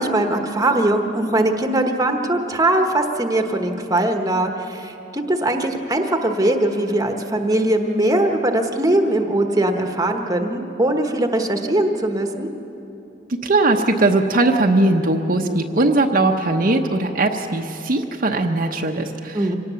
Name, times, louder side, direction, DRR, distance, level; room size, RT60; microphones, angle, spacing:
voice 1, 0.0-12.5 19.3-19.6, right 1 dB, 20° right, 5 dB, 1.2 m, -20 dB
voice 2, 13.3-19.5, right 2 dB, 50° right, 2 dB, 0.9 m, -19 dB
25.5 x 18.0 x 7.0 m, 2.9 s
head